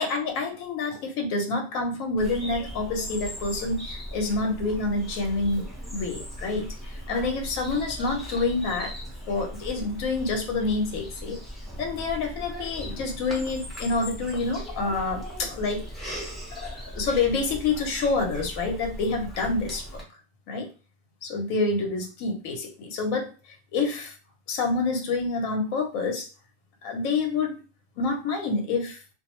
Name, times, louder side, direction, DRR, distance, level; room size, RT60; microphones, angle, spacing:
voice 1, 0.0-5.7 5.9-8.9 9.3-11.4 11.8-16.1 16.6-19.8 20.5-20.7 21.2-24.1 24.5-26.3 26.8-27.6 28.0-29.0, left 3 dB, 90° left, 3 dB, 1.1 m, -28 dB
Bird vocalization bird call bird song, 2.2-20.0, equal, ahead, 0.7 m, -38 dB
2.3 x 2.2 x 3.0 m, 0.35 s
omnidirectional pair, 1.4 m